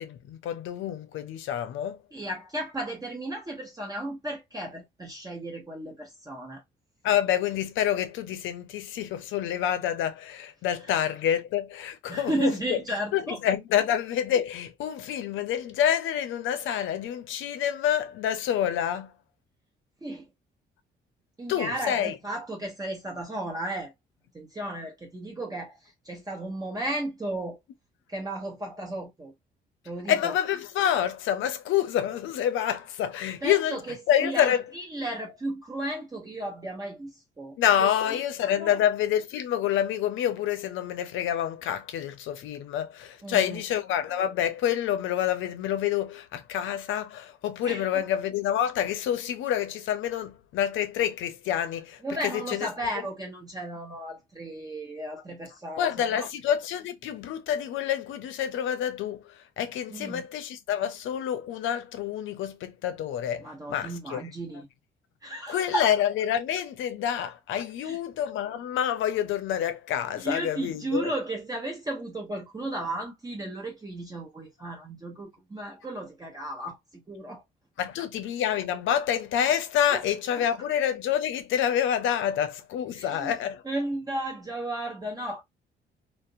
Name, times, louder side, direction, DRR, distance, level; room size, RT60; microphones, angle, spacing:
voice 1, 0.0-2.0 7.0-12.8 13.1-19.1 21.5-22.2 30.1-33.8 34.1-34.6 37.6-52.7 55.8-64.2 65.5-71.1 77.8-83.6, left 10 dB, 85° left, 0.5 m, -27 dB
voice 2, 2.1-6.6 12.1-13.4 20.0-20.3 21.4-23.9 24.3-27.6 28.1-29.3 29.8-30.3 33.4-38.2 38.6-38.8 43.2-43.6 47.6-48.0 52.0-56.3 59.9-60.3 63.4-64.7 65.2-65.8 67.8-68.0 70.2-77.4 79.9-80.0 80.4-80.5 82.9-83.3 83.6-85.4, right 1 dB, 20° right, 0.8 m, -34 dB
2.4 x 2.0 x 2.6 m
cardioid pair, 90°, 20 cm